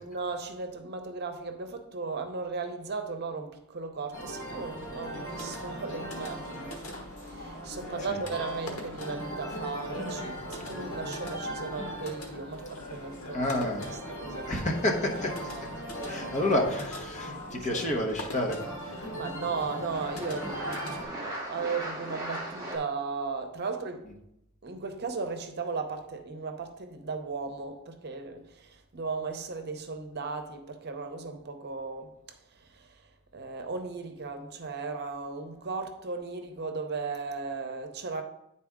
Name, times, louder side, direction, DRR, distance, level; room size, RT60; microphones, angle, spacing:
voice 1, 0.0-6.9 7.2-13.5 14.1-14.8 15.9-16.4 17.2-17.8 19.1-24.1 24.6-33.0 33.3-38.2, right 4 dB, 50° right, 0.7 m, -36 dB
sound 1, 4.1-21.0, equal, 90° left, 1.3 m, -38 dB
sound 2, 9.7-17.8, left 2 dB, 70° left, 1.0 m, -49 dB
voice 2, 13.3-13.9 14.5-15.3 16.1-18.6, left 1 dB, 35° left, 1.1 m, -29 dB
sound 3, 15.0-15.5 16.4-16.7 17.7-17.8 18.1-19.3 19.6-22.8, right 1 dB, 15° right, 1.9 m, -39 dB
9.6 x 4.2 x 3.6 m
head